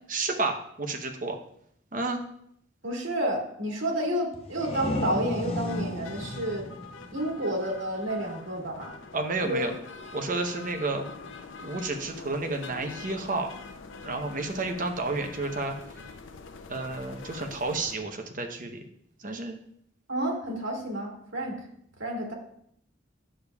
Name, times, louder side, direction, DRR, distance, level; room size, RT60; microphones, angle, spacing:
voice 1, 0.1-1.4 1.9-2.2 9.1-9.7 10.1-11.0 11.6-13.5 14.0-15.7 16.7-18.8 19.2-19.6, right 3 dB, 45° right, 4 dB, 0.8 m, -31 dB
voice 2, 2.8-6.7 7.1-8.9 9.4-9.7 20.1-21.7 22.0-22.3, right 1 dB, 80° right, -1 dB, 2.0 m, -30 dB
sound 1, 4.3-7.9, left 1 dB, 30° left, 0.7 m, -34 dB
sound 2, 5.7-18.0, left 4 dB, 80° left, 0.6 m, -45 dB
10.0 x 6.9 x 2.4 m, 0.69 s
head